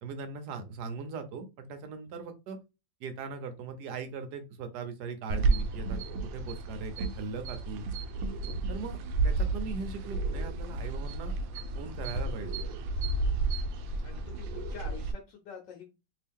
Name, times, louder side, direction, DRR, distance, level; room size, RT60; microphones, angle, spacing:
voice 1, 0.0-2.6 3.0-6.0 6.3-7.9 8.7-9.0 9.2-11.4 11.7-12.6, right 4 dB, 65° right, 8 dB, 1.2 m, -39 dB
sound 1, 5.3-15.1, right 3 dB, 90° right, 1.3 m, -32 dB
voice 2, 14.0-15.9, left 6 dB, 70° left, 2 dB, 1.3 m, -46 dB
3.0 x 2.8 x 3.5 m, 0.26 s
omnidirectional pair, 2.1 m